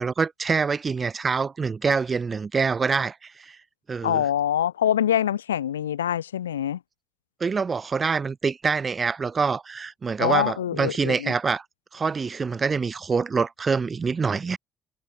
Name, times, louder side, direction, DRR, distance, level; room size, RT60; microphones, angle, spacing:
voice 1, 0.0-3.6 3.9-4.2 7.4-11.6 11.9-14.6, right 5 dB, 40° right, 4.5 m, -25 dB
voice 2, 4.0-6.8 10.2-11.3, left 10 dB, 85° left, 3.6 m, -24 dB
figure-of-eight pair, 45°, 0 cm